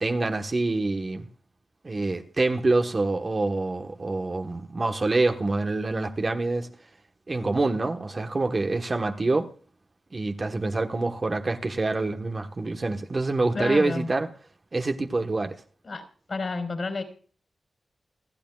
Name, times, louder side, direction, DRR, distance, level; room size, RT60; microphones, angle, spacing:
voice 1, 0.0-1.3 1.8-6.7 7.3-9.5 10.1-14.3 14.7-15.6, right 2 dB, 35° right, 1.3 m, -26 dB
voice 2, 13.5-14.1 15.8-16.0 16.3-17.0, left 3 dB, 50° left, 4.4 m, -30 dB
28.5 x 10.0 x 2.4 m
wide cardioid pair, 95°, 0 cm